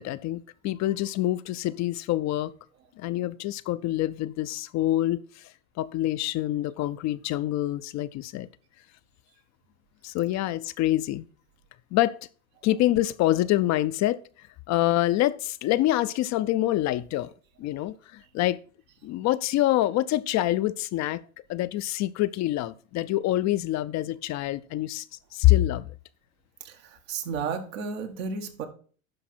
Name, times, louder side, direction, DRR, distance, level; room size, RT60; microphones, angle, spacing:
voice 1, 0.0-2.5 3.0-5.5 5.8-8.5 10.0-11.3 11.9-12.1 12.6-14.2 14.7-17.3 17.6-18.6 19.0-21.2 21.5-25.0 25.3-25.9, left 15 dB, 45° left, 0.5 m, -26 dB
voice 2, 27.1-28.7, right 5 dB, 80° right, 1.7 m, -32 dB
11.5 x 4.7 x 4.3 m
hypercardioid pair, 95°, 39 cm